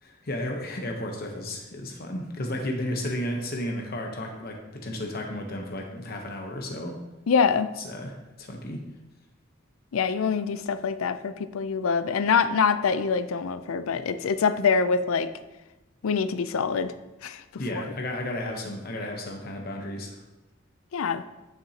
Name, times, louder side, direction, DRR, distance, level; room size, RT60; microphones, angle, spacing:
voice 1, 0.0-7.0 7.8-8.8 17.6-20.2, left 1 dB, 45° left, 2 dB, 0.8 m, -33 dB
voice 2, 7.3-7.7 9.9-15.3 16.0-16.9 17.2-17.4 17.7-17.8 20.9-21.2, left 5 dB, 85° left, 12 dB, 0.4 m, -25 dB
9.7 x 6.1 x 2.8 m, 1.0 s
head